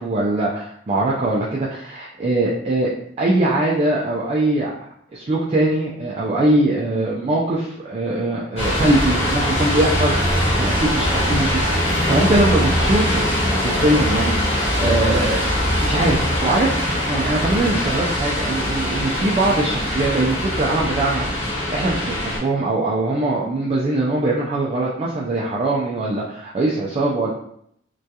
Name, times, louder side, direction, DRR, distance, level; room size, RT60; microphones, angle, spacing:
voice 1, 0.0-2.9 3.2-4.7 5.1-15.4 15.8-16.8 17.1-27.3, right 2 dB, 30° right, -4 dB, 0.3 m, -22 dB
sound 1, 8.6-22.4, equal, 30° left, 1.0 m, -21 dB
2.2 x 2.2 x 2.7 m, 0.70 s
head